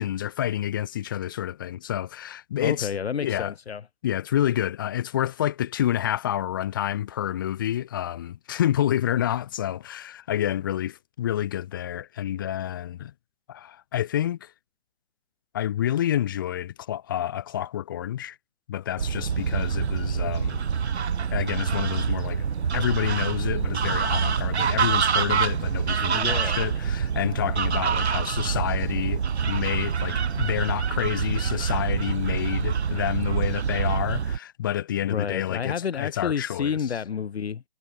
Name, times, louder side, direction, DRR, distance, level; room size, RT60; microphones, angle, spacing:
voice 1, 0.0-2.9 3.2-3.5 4.0-13.1 13.5-14.5 15.5-18.4 18.7-20.6 21.3-22.5 22.7-36.8, left 11 dB, 20° left, 0.5 m, -28 dB
voice 2, 2.6-3.8 26.1-26.7 35.1-37.6, left 7 dB, 65° left, 1.3 m, -29 dB
sound 1, 19.0-34.4, right 6 dB, 75° right, 1.1 m, -26 dB
figure-of-eight pair, 140°, 33 cm